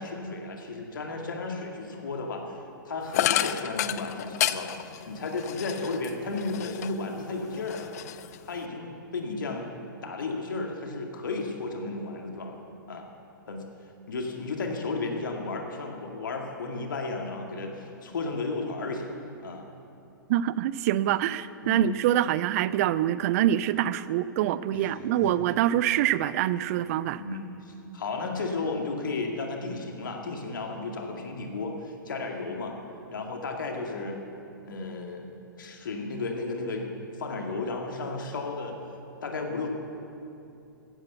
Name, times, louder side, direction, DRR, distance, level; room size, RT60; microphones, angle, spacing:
voice 1, 0.0-2.4 2.9-4.8 5.1-7.9 8.5-9.7 10.0-12.6 12.9-13.1 13.5-13.6 14.1-19.2 19.4-19.7 21.6-21.9 24.7-25.3 27.2-32.7 33.1-34.2 34.6-35.3 35.6-38.8 39.2-39.7, left 3 dB, 70° left, 2 dB, 2.1 m, -33 dB
sound 1, 3.1-7.1 7.5-8.7, left 12 dB, 50° left, 0.5 m, -30 dB
voice 2, 20.3-27.2, right 12 dB, 45° right, 16 dB, 0.5 m, -25 dB
15.5 x 10.5 x 6.9 m, 2.7 s
figure-of-eight pair, 110°, 11 cm